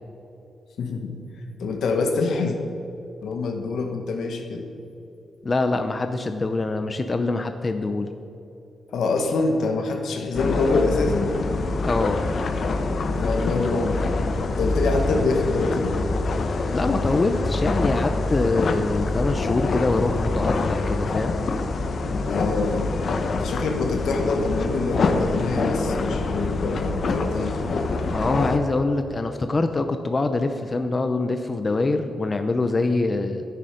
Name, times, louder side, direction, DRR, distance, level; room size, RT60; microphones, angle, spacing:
voice 1, 0.8-1.1 1.6-2.6 3.2-4.7 8.9-11.4 13.1-14.1 14.5-16.0 22.3-22.9 23.4-27.5, left 3 dB, 75° left, 4 dB, 1.5 m, -25 dB
voice 2, 5.4-8.1 11.8-12.2 16.7-21.3 28.1-33.5, left 3 dB, 25° left, 7 dB, 0.6 m, -24 dB
sound 1, 10.3-28.6, left 3 dB, 50° left, 0.9 m, -25 dB
13.0 x 10.0 x 5.1 m, 3.0 s
wide cardioid pair, 150°, 0 cm